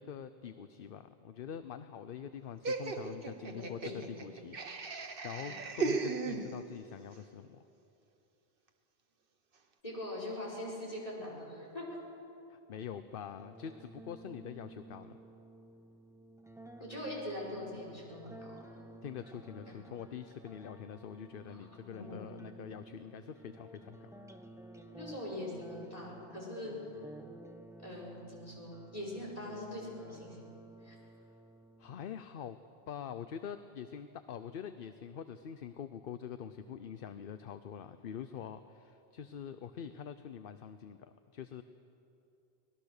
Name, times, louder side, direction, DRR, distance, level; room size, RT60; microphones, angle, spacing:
voice 1, 0.0-7.6 12.5-15.2 19.0-24.3 31.8-32.6 32.9-41.6, left 8 dB, 60° left, 11 dB, 0.8 m, -45 dB
Laughter, 2.6-6.9, right 4 dB, 60° right, 1.3 m, -37 dB
voice 2, 3.6-4.1 5.4-5.6 9.8-12.0 16.8-18.6 19.7-19.8 21.5-22.2 24.8-26.8 27.8-30.5 30.8-31.0, left 1 dB, 35° left, -3 dB, 5.2 m, -42 dB
sound 1, 13.4-32.3, right 1 dB, 5° right, 0.9 m, -53 dB
24.0 x 19.5 x 6.6 m, 2.8 s
omnidirectional pair, 1.1 m